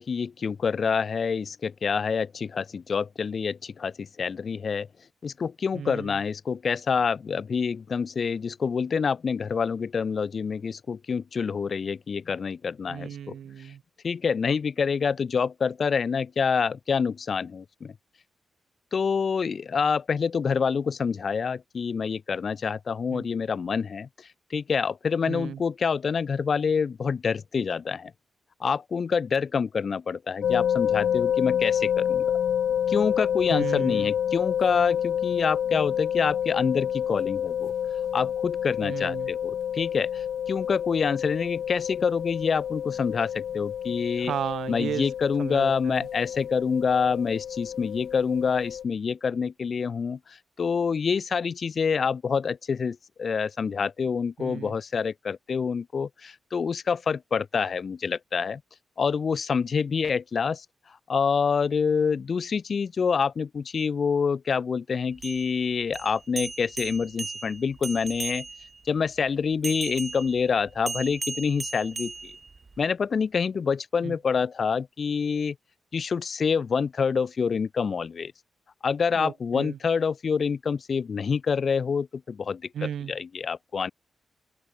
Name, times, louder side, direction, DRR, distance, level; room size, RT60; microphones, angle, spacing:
voice 1, 0.0-4.9 5.2-13.3 14.0-17.9 18.9-28.1 28.6-32.3 32.9-37.7 38.1-44.3 44.7-58.6 59.0-60.6 61.1-68.5 68.8-72.1 72.8-75.6 75.9-78.3 78.8-82.6 83.1-83.9, left 6 dB, 45° left, 4.5 m, -27 dB
voice 2, 5.7-6.2 12.9-13.8 23.1-23.3 25.3-25.6 33.5-34.1 38.8-39.3 44.2-45.1 45.4-46.1 54.4-54.7 74.0-74.1 79.1-79.8 82.7-83.1, right 9 dB, 80° right, 5.1 m, -34 dB
sound 1, 30.4-48.8, left 9 dB, 85° left, 1.8 m, -28 dB
sound 2, 65.1-68.8 69.6-72.8, right 3 dB, 30° right, 4.2 m, -37 dB
wide cardioid pair, 135°, 0 cm